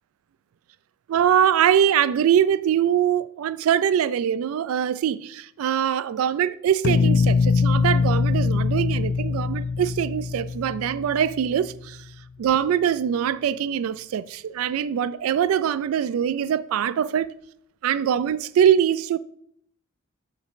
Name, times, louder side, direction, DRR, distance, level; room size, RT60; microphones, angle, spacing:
voice 1, 1.1-12.0 12.4-17.3 17.8-19.2, right 9 dB, 85° right, 0.3 m, -23 dB
sound 1, 6.8-11.7, left 5 dB, 50° left, 0.3 m, -23 dB
6.9 x 6.4 x 3.6 m
head